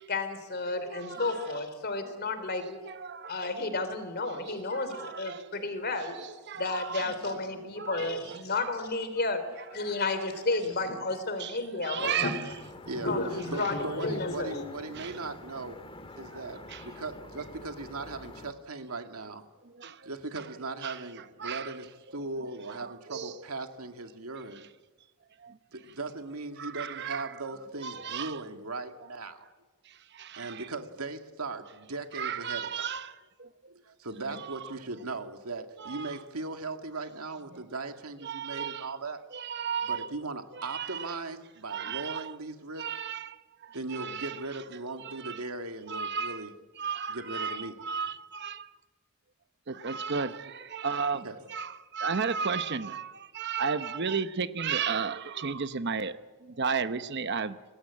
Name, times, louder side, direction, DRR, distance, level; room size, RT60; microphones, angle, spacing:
voice 1, 0.1-2.8 3.3-6.2 6.6-9.4 9.7-12.3 13.0-14.6, left 3 dB, 45° left, 3.5 m, -32 dB
voice 2, 0.7-1.6 2.0-2.1 2.5-2.6 2.9-3.5 4.3-5.7 6.2-7.3 7.8-8.9 9.5-10.0 11.4-12.5 14.9-15.3 16.2-16.9 19.6-20.1 20.3-20.5 20.8-21.7 22.1-22.2 22.7-23.4 25.4-25.8 26.6-27.4 27.8-28.4 29.8-30.7 32.1-33.8 34.3-34.7 35.8-36.2 37.5-37.6 38.2-39.0 39.3-40.1 40.5-41.2 41.7-42.3 42.8-44.4 45.0-45.4 45.9-46.5 46.8-48.8 49.7-57.6, right 6 dB, 50° right, 0.9 m, -35 dB
sound 1, 12.5-18.5, left 2 dB, 25° left, 1.9 m, -47 dB
voice 3, 12.8-15.8 16.2-19.4 20.0-24.7 25.7-29.5 30.4-32.9 33.9-39.2 39.8-42.9 43.7-46.5 47.1-47.7 49.9-50.2 51.2-51.4, right 3 dB, 85° right, 2.2 m, -38 dB
27.0 x 19.5 x 8.7 m
head